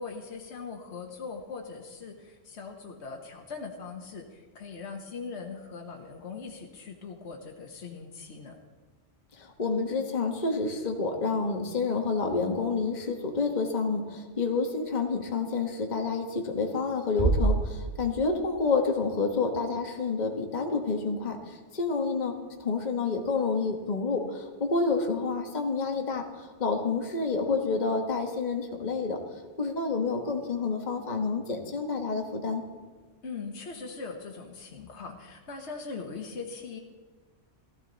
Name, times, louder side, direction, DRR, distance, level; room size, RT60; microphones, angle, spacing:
voice 1, 0.0-8.5 33.2-36.8, left 4 dB, 65° left, 1 dB, 1.6 m, -40 dB
voice 2, 9.4-29.2 29.6-32.6, left 4 dB, 35° left, 3 dB, 1.4 m, -29 dB
Bass drum, 17.2-18.6, right 2 dB, 40° right, 2.1 m, -27 dB
16.0 x 15.0 x 4.0 m, 1.4 s
omnidirectional pair, 1.2 m